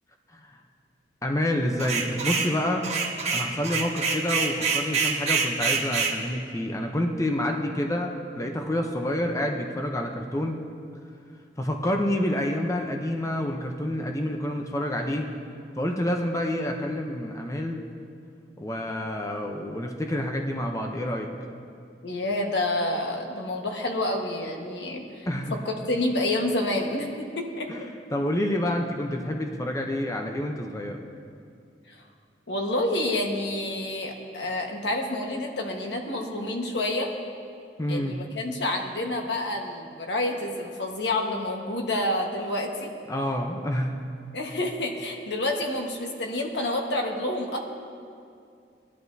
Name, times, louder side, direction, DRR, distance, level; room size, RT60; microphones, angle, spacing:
voice 1, 1.2-2.9 3.3-10.6 11.6-15.3 15.8-17.8 18.6-21.3 25.3-25.6 27.7-31.0 37.8-38.2 43.1-44.0, left 1 dB, 20° left, 3 dB, 0.6 m, -28 dB
sound 1, 1.8-2.5 2.8-6.2, right 5 dB, 40° right, 1.3 m, -26 dB
voice 2, 22.0-27.7 31.9-32.0 32.5-37.1 37.9-42.9 44.3-47.6, left 1 dB, 80° left, 2 dB, 1.3 m, -28 dB
19.0 x 11.5 x 2.7 m, 2.4 s
head